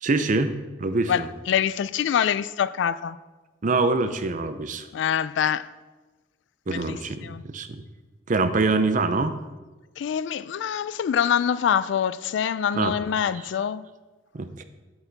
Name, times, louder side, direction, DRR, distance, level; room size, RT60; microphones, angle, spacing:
voice 1, 0.0-0.5 0.8-1.3 3.6-4.9 6.7-7.2 7.4-7.8 8.3-9.4 12.7-12.9 14.3-14.6, right 3 dB, 40° right, 10 dB, 0.5 m, -24 dB
voice 2, 1.1-3.2 4.9-5.7 6.7-7.4 10.0-13.8, left 8 dB, 65° left, 17 dB, 0.3 m, -25 dB
8.0 x 8.0 x 4.0 m, 1.2 s
head